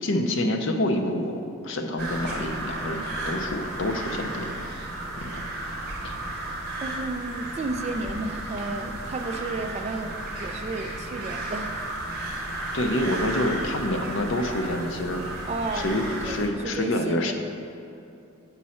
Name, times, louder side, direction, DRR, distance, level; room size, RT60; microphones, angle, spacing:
voice 1, 0.0-4.7 5.2-5.4 6.0-6.2 12.7-15.2 15.7-17.3, left 1 dB, 60° left, 5 dB, 0.6 m, -27 dB
sound 1, 2.0-16.5, right 2 dB, 45° right, 1.0 m, -34 dB
voice 2, 6.8-11.7 15.5-17.3, right 2 dB, 30° right, 5 dB, 0.3 m, -33 dB
7.3 x 5.4 x 4.2 m, 2.7 s
head